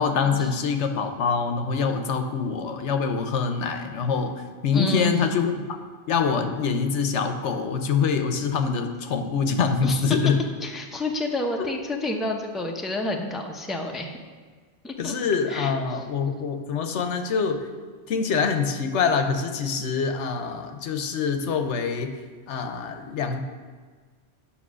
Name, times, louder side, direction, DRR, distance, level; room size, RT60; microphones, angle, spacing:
voice 1, 0.0-4.3 4.6-5.5 6.1-10.3 11.6-11.7 15.0-17.6 18.1-22.2 22.5-23.4, left 5 dB, 80° left, 6 dB, 1.1 m, -25 dB
voice 2, 4.7-5.2 9.8-10.0 10.6-14.1 14.8-15.1 15.5-16.0, left 2 dB, ahead, 1 dB, 0.7 m, -30 dB
8.5 x 5.8 x 6.2 m, 1.5 s
omnidirectional pair, 1.2 m